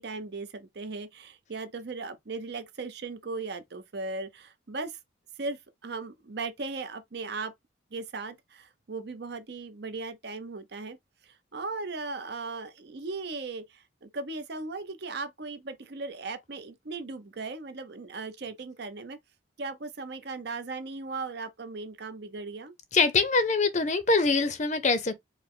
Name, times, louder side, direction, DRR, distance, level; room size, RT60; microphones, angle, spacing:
voice 1, 0.0-5.0 5.4-7.5 7.9-11.0 11.2-19.2 19.6-22.7, right 3 dB, 55° right, 0.7 m, -37 dB
voice 2, 22.9-25.1, left 3 dB, 35° left, 0.6 m, -24 dB
4.9 x 2.1 x 3.6 m
head